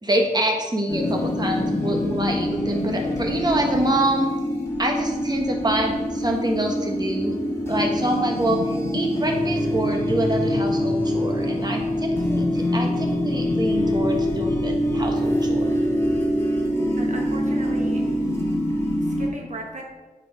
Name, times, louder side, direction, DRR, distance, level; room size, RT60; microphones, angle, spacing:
voice 1, 0.0-4.3 4.8-7.4 7.7-15.7, right 1 dB, 30° right, 2 dB, 1.3 m, -26 dB
sound 1, 0.9-19.3, left 1 dB, 20° left, 1.8 m, -24 dB
voice 2, 17.0-18.0 19.0-19.8, right 2 dB, 55° right, 0 dB, 1.1 m, -36 dB
9.0 x 4.7 x 4.8 m, 1.2 s
wide cardioid pair, 75°, 14 cm